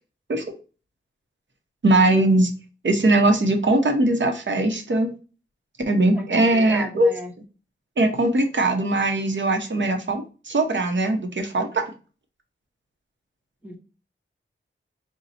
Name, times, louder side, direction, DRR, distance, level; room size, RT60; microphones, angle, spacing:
voice 1, 1.8-2.5 2.8-5.1 5.9-7.1 8.0-11.9, right 2 dB, 60° right, 4 dB, 0.9 m, -20 dB
voice 2, 6.1-7.3 13.6-13.8, equal, 5° right, 1 dB, 1.1 m, -36 dB
4.2 x 2.3 x 3.9 m, 0.35 s
wide cardioid pair, 65°, 21 cm